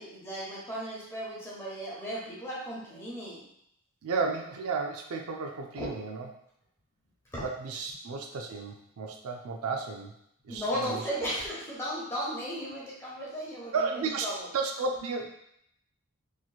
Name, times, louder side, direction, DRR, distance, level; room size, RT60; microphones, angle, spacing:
voice 1, 0.0-3.5 5.8-5.9 7.3-7.4 10.5-14.5, equal, 10° left, -6 dB, 0.9 m, -35 dB
voice 2, 4.0-6.3 7.4-10.2 10.4-11.0 13.7-14.3 14.5-15.3, right 4 dB, 70° right, 3 dB, 0.4 m, -33 dB
3.1 x 2.9 x 2.3 m, 0.73 s
head